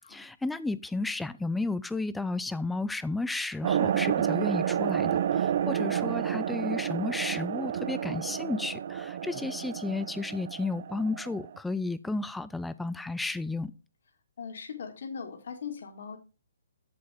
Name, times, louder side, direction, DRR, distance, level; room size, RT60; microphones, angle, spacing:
voice 1, 0.1-13.7, left 3 dB, 5° left, 0.4 m, -33 dB
sound 1, 3.6-11.6, right 9 dB, 55° right, 0.5 m, -30 dB
voice 2, 14.4-16.2, left 6 dB, 65° left, 2.3 m, -39 dB
7.7 x 7.6 x 3.6 m
hypercardioid pair, 150°, 0 cm